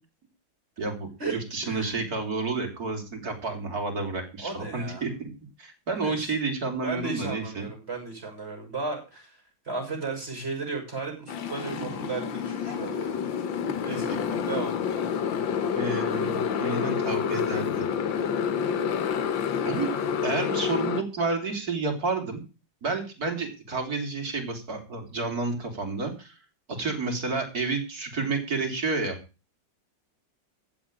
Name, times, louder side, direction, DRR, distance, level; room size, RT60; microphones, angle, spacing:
voice 1, 0.8-5.3 5.6-7.7 11.7-11.8 12.7-12.8 13.7-14.0 15.8-17.9 19.6-22.4 22.8-26.4 26.8-29.2, right 3 dB, 50° right, 4 dB, 3.9 m, -30 dB
voice 2, 1.6-2.0 4.4-5.0 6.0-6.2 6.8-13.2 13.8-14.7, right 3 dB, 30° right, 3 dB, 6.4 m, -35 dB
Motorcycle, 11.3-21.0, left 7 dB, 80° left, 1.9 m, -28 dB
15.0 x 5.8 x 8.9 m, 0.33 s
omnidirectional pair, 2.0 m